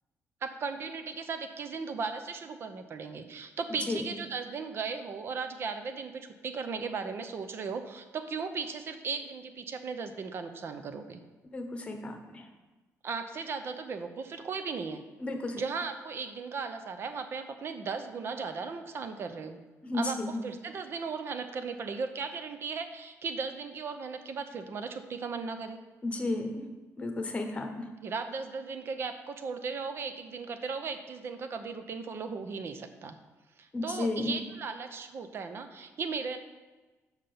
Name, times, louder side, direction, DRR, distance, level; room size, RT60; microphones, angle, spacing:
voice 1, 0.4-11.2 13.0-15.0 15.5-19.6 20.0-20.2 20.4-25.8 28.0-33.2 33.6-36.4, right 5 dB, 45° right, 8 dB, 0.7 m, -36 dB
voice 2, 3.7-4.1 11.5-12.5 15.2-15.6 19.8-20.4 26.0-26.6 27.0-27.9 33.7-34.4, left 2 dB, 20° left, 4 dB, 1.0 m, -33 dB
5.9 x 5.6 x 6.8 m, 1.2 s
cardioid pair, 155°, 6 cm